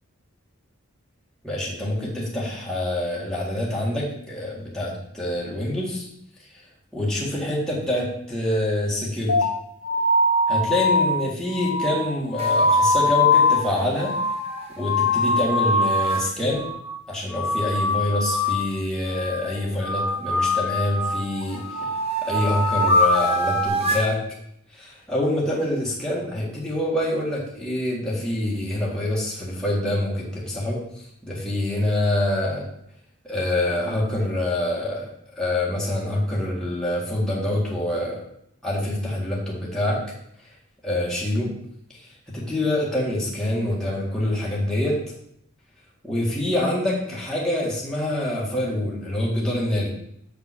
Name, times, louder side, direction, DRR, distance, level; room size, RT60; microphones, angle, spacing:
voice 1, 1.4-6.1 6.5-6.6 6.9-9.5 10.5-14.2 14.8-16.7 17.1-21.9 22.2-24.2 24.7-30.8 31.2-32.7 33.2-35.1 35.4-38.2 38.6-40.0 40.8-41.5 41.9-45.0 46.0-49.9, left 1 dB, 5° left, -6 dB, 1.8 m, -26 dB
sound 1, 9.3-16.3 16.5-17.0 17.3-18.8 19.1-19.5 19.8-21.3 21.6-22.0 22.3-23.7, left 2 dB, 85° left, 1.2 m, -23 dB
sound 2, 12.4-16.2 19.2-20.4 20.9-24.1, right 1 dB, 30° right, 1.2 m, -27 dB
7.1 x 5.2 x 6.2 m, 0.73 s
head